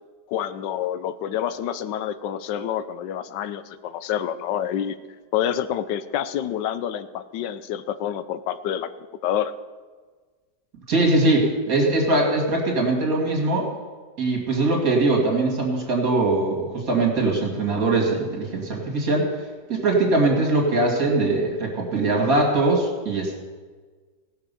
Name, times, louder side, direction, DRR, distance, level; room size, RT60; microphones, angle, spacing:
voice 1, 0.3-5.0 5.3-9.5, left 10 dB, 90° left, 13 dB, 1.3 m, -28 dB
voice 2, 10.9-13.7 14.2-19.3 19.7-23.4, right 2 dB, 55° right, 0 dB, 2.6 m, -21 dB
17.5 x 6.0 x 6.8 m, 1.4 s
omnidirectional pair, 1.9 m